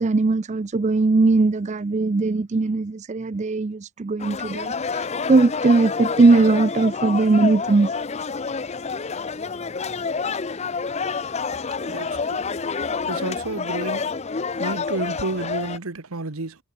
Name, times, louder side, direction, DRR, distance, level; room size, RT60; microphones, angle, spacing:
voice 1, 0.0-7.9, right 3 dB, 30° right, 0.4 m, -19 dB
sound 1, 4.2-15.8, left 5 dB, 30° left, 0.6 m, -28 dB
voice 2, 11.8-12.4 13.1-14.1 14.6-16.6, right 2 dB, 75° right, 1.4 m, -30 dB
head